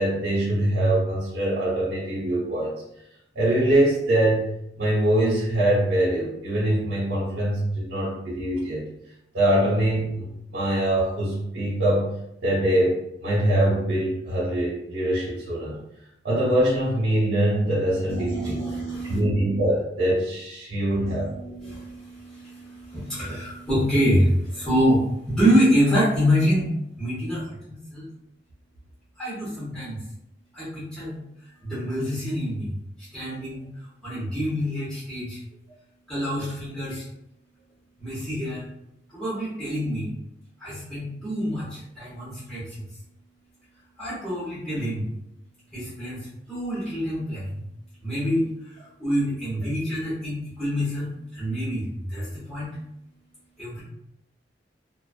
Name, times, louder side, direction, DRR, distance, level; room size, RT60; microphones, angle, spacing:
voice 1, 0.0-2.7 3.3-8.9 9.3-12.1 12.4-15.8 16.2-18.6 19.1-21.3, right 1 dB, 80° right, -9 dB, 0.9 m, -23 dB
voice 2, 18.1-19.2 21.1-28.0 29.2-30.0 30.5-31.2 31.6-33.7 34.0-35.4 36.1-37.1 38.0-38.7 39.1-40.1 40.6-42.8 44.0-45.1 45.7-47.6 48.0-52.8 53.6-53.8, equal, 5° left, -11 dB, 0.8 m, -26 dB
2.4 x 2.2 x 2.4 m, 0.81 s
head